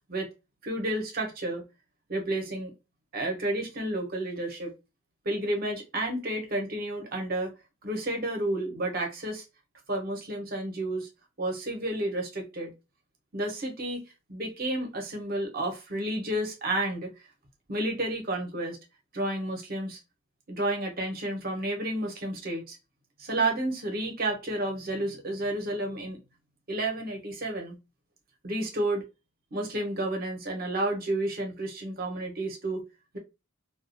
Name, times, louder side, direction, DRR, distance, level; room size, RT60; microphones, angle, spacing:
voice 1, 0.6-1.6 2.1-2.7 3.1-4.7 5.2-7.5 7.8-9.4 9.9-11.1 11.4-12.7 13.3-14.0 14.3-17.1 17.7-18.8 19.1-20.0 20.5-22.8 23.2-26.2 26.7-27.8 28.4-29.0 29.5-32.8, right 1 dB, 45° right, 0.8 m, -31 dB
2.4 x 2.2 x 2.5 m
head